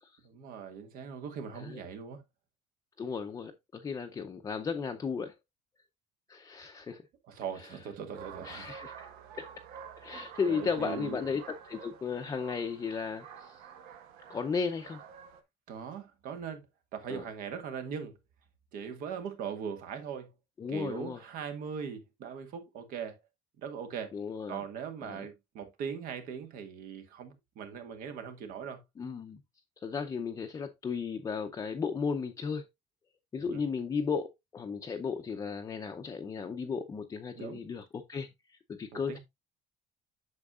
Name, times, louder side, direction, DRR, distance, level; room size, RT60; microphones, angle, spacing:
voice 1, 0.2-2.2 7.3-8.8 9.2-9.3 10.4-11.2 15.7-16.6 16.9-18.2 18.7-20.3 20.7-23.2 23.6-24.1 24.5-28.8 33.5-33.7 37.4-37.6 38.9-39.2, right 7 dB, 65° right, 1.7 m, -40 dB
voice 2, 3.0-5.3 6.3-7.0 8.4-9.1 9.3-9.5 10.0-13.6 14.3-15.0 17.1-17.2 20.6-21.2 24.1-24.6 25.0-25.3 29.0-29.4 29.8-32.7 33.3-39.2, left 5 dB, 20° left, 0.6 m, -35 dB
sound 1, 8.1-15.4, right 8 dB, 85° right, 1.3 m, -49 dB
8.4 x 6.4 x 2.4 m
cardioid pair, 155°, 15 cm